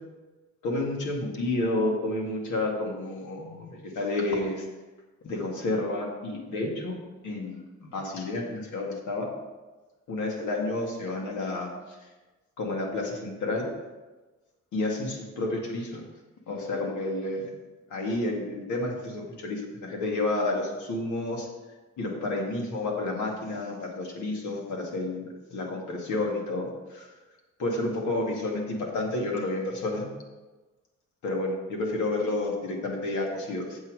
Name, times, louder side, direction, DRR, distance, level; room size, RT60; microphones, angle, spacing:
voice 1, 0.6-4.7 5.2-7.0 7.2-9.3 10.1-11.7 12.6-13.7 14.7-16.0 16.5-17.5 17.9-21.5 22.0-27.1 27.6-30.1 31.2-33.8, left 2 dB, 75° left, 0 dB, 2.2 m, -30 dB
8.2 x 7.5 x 4.8 m, 1.2 s
cardioid pair, 90°, 30 cm